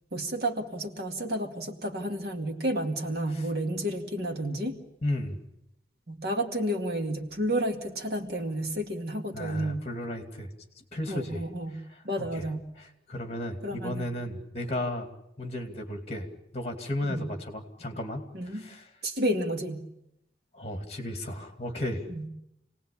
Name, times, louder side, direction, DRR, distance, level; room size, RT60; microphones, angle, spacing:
voice 1, 0.1-4.7 6.1-9.8 11.1-11.8 12.0-12.7 13.6-14.1 17.1-17.3 18.3-18.7 19.0-19.8 22.1-22.3, right 1 dB, 60° right, 4 dB, 2.2 m, -31 dB
voice 2, 5.0-5.4 9.3-10.5 10.9-11.4 12.2-12.4 12.8-15.1 15.4-16.3 16.5-18.8 20.5-22.0, left 1 dB, 35° left, 5 dB, 2.6 m, -34 dB
27.5 x 18.5 x 8.6 m, 0.86 s
head